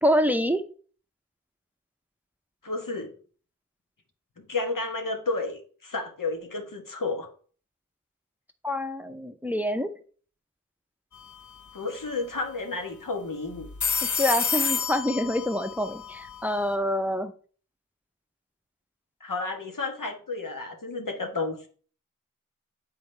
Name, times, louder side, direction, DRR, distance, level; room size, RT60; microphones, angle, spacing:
voice 1, 0.0-0.6 8.6-9.9 14.2-17.3, equal, 5° right, 9 dB, 0.6 m, -26 dB
voice 2, 2.6-3.1 4.4-7.3 11.7-13.7 19.2-21.7, left 3 dB, 80° left, 4 dB, 1.3 m, -32 dB
sound 1, 11.1-11.4 11.7-11.8 13.6-16.7, left 6 dB, 65° left, 1.0 m, -30 dB
9.6 x 4.0 x 3.3 m, 0.43 s
wide cardioid pair, 45°, 32 cm